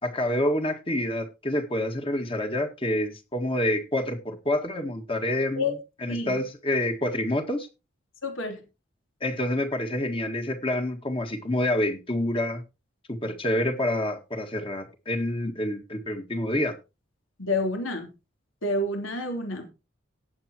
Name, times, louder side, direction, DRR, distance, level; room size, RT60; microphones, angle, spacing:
voice 1, 0.0-7.7 9.2-12.6 13.1-16.8, left 1 dB, 25° left, 1.8 m, -27 dB
voice 2, 6.1-6.4 8.2-8.6 17.4-18.1 18.6-19.7, left 2 dB, 75° left, 3.4 m, -28 dB
18.0 x 7.3 x 2.9 m
head